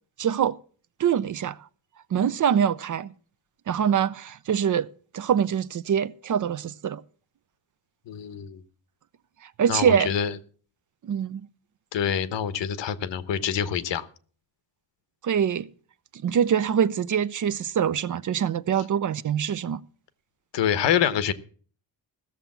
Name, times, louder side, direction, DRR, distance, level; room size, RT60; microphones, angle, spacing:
voice 1, 0.2-0.6 1.0-1.6 2.1-3.1 3.7-4.9 5.1-7.0 9.6-10.2 11.0-11.4 15.2-15.7 16.1-19.8, right 8 dB, 45° right, 0.6 m, -24 dB
voice 2, 8.1-8.6 9.7-10.4 11.9-14.1 20.5-21.3, left 8 dB, 75° left, 1.1 m, -26 dB
16.0 x 6.9 x 7.3 m
cardioid pair, 115°, 43 cm